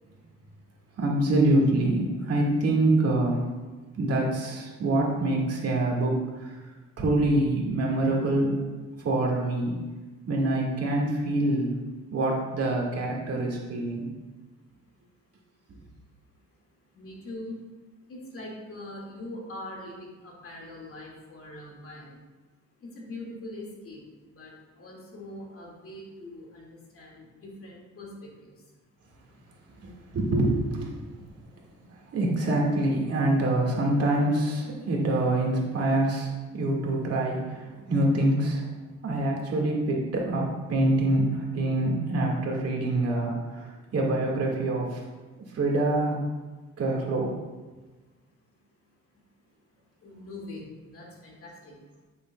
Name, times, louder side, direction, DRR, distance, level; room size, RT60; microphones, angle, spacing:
voice 1, 1.0-3.5 3.9-6.6 7.0-8.6 9.0-9.7 10.3-11.8 12.1-14.1 29.8-30.9 31.9-38.7 39.0-45.0 45.5-46.2 46.8-47.3, right 1 dB, 55° right, -1 dB, 1.9 m, -25 dB
voice 2, 16.3-16.7 16.9-17.6 18.1-22.2 22.8-28.8 29.1-29.2 31.3-32.1 50.0-52.0, left 1 dB, 45° left, -2 dB, 2.1 m, -43 dB
8.7 x 6.7 x 2.3 m, 1.2 s
cardioid pair, 90°, 30 cm